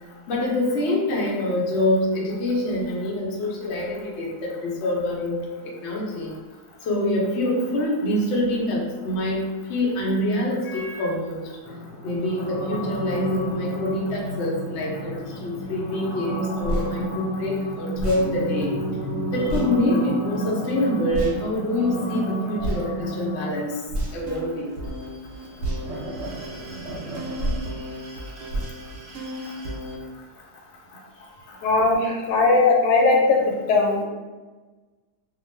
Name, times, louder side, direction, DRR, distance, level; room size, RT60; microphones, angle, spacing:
voice 1, 0.3-5.4 5.6-6.4 6.8-11.5 12.0-18.7 19.3-23.8 24.1-24.7 31.5-31.7, left 1 dB, 55° left, -3 dB, 0.8 m, -25 dB
sound 1, 11.6-23.5, right 1 dB, 25° right, 0.6 m, -31 dB
sound 2, 16.6-16.9 17.9-18.3 19.5-19.7 21.1-21.4 22.6-22.8 23.9-24.3 25.6-25.8 27.4-27.7 28.5-28.8, right 1 dB, 60° right, 0.9 m, -27 dB
sound 3, 24.0-30.0, equal, 90° right, 0.5 m, -35 dB
voice 2, 31.6-34.0, left 3 dB, 90° left, 0 dB, 1.2 m, -19 dB
2.5 x 2.3 x 3.1 m, 1.3 s
omnidirectional pair, 1.7 m